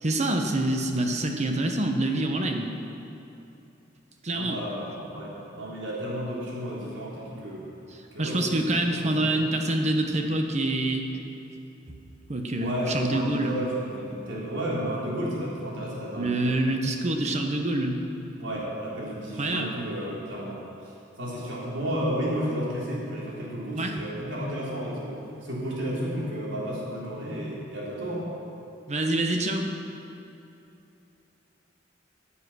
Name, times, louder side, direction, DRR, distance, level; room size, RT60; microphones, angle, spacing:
voice 1, 0.0-2.7 4.2-4.6 8.2-11.1 12.3-13.6 16.2-18.0 19.4-19.8 23.7-24.0 28.9-29.7, right 1 dB, 40° right, 4 dB, 1.0 m, -26 dB
voice 2, 4.3-7.6 8.1-8.6 8.9-9.3 12.6-16.6 18.3-28.3, equal, 85° right, -6 dB, 3.6 m, -32 dB
14.5 x 8.5 x 6.2 m, 2.8 s
head